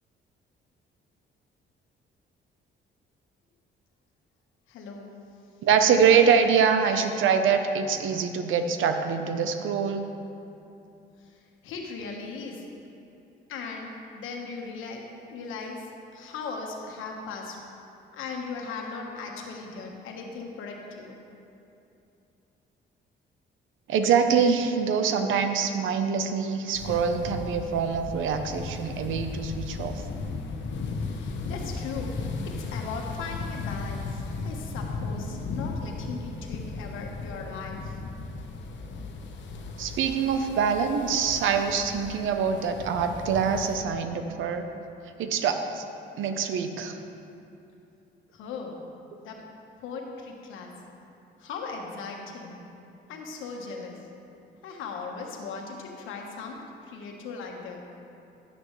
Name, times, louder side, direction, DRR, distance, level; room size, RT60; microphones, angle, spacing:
voice 1, 4.7-5.1 11.2-12.7 13.5-17.6 18.1-21.2 31.1-32.2 32.4-38.0 48.3-48.8 49.2-49.4 49.8-50.7 51.4-52.6 53.1-54.0 54.6-57.8, left 4 dB, 90° left, 1 dB, 1.4 m, -38 dB
voice 2, 5.6-10.1 23.9-30.0 39.8-44.7 45.2-45.8 46.2-47.0, right 6 dB, 80° right, 7 dB, 0.8 m, -24 dB
sound 1, 26.7-43.8, left 3 dB, 70° left, 1.0 m, -36 dB
11.5 x 9.7 x 3.2 m, 2.8 s
cardioid pair, 90°, 20 cm